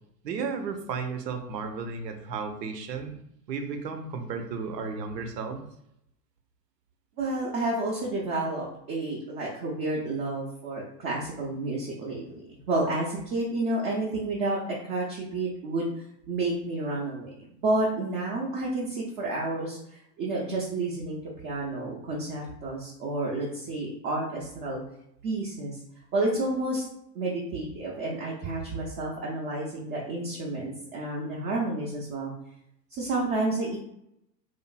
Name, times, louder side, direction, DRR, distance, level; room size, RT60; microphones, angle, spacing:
voice 1, 0.2-3.2 3.5-5.6, right 5 dB, 80° right, 6 dB, 0.7 m, -33 dB
voice 2, 7.2-17.3 17.6-24.8 25.2-25.8 26.1-26.8 27.1-32.3 32.9-33.8, right 2 dB, 30° right, -3 dB, 0.5 m, -30 dB
2.8 x 2.5 x 2.3 m, 0.77 s
hypercardioid pair, 105°, 49 cm